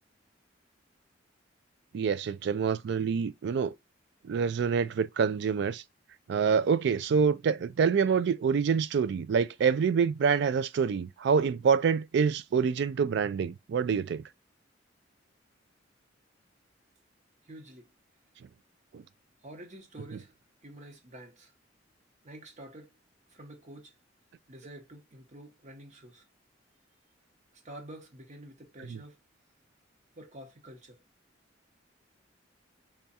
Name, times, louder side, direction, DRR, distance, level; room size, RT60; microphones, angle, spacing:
voice 1, 1.9-3.7 4.2-5.8 6.3-14.2 18.9-19.0 28.9-29.0, right 6 dB, 65° right, 0.3 m, -26 dB
voice 2, 17.5-17.9 19.4-20.3 20.6-21.5 22.2-22.9 23.3-23.9 24.5-26.2 27.5-29.2 30.1-31.0, right 1 dB, 40° right, 1.0 m, -48 dB
3.5 x 2.4 x 4.1 m
head